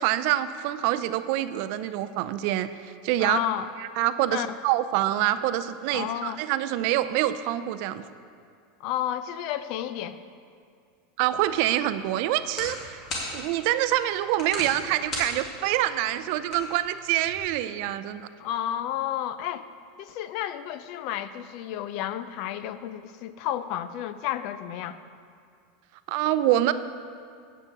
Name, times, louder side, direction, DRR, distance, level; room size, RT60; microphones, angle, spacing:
voice 1, 0.0-3.4 3.8-8.0 11.2-13.0 13.3-18.3 26.1-26.7, right 13 dB, 55° right, 12 dB, 0.4 m, -26 dB
voice 2, 3.2-3.7 4.3-4.6 5.9-6.4 8.8-10.2 18.4-19.6 20.0-25.0, left 11 dB, 50° left, 13 dB, 0.4 m, -31 dB
sound 1, 11.3-17.4, left 1 dB, 35° left, 2.3 m, -39 dB
8.1 x 6.7 x 7.2 m, 2.3 s
supercardioid pair, 155°, 0 cm